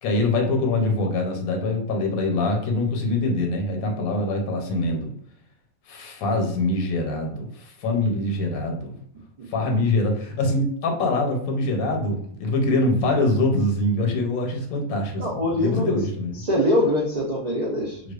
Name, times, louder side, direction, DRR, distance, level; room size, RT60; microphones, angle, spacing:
voice 1, 0.0-5.1 5.9-8.9 9.5-16.4 18.0-18.1, left 2 dB, 90° left, 2 dB, 1.1 m, -24 dB
voice 2, 15.2-16.0 16.3-18.0, left 1 dB, 85° right, -5 dB, 0.3 m, -23 dB
2.4 x 2.2 x 2.3 m, 0.67 s
omnidirectional pair, 1.4 m